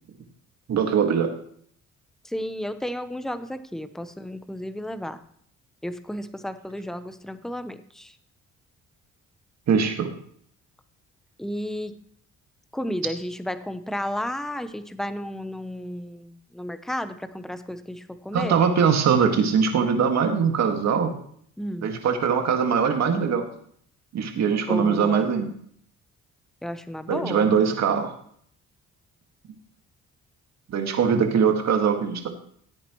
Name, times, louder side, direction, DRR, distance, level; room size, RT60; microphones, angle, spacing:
voice 1, 0.7-1.3 9.7-10.1 18.3-21.1 21.8-23.5 24.1-25.5 27.1-28.1 30.7-32.3, right 6 dB, 60° right, 4 dB, 1.9 m, -22 dB
voice 2, 2.2-5.2 5.8-8.1 11.4-11.9 12.7-18.6 21.6-21.9 24.7-25.3 26.6-27.5, equal, ahead, 11 dB, 0.8 m, -32 dB
16.0 x 8.7 x 3.1 m, 0.62 s
cardioid pair, 90°, 30 cm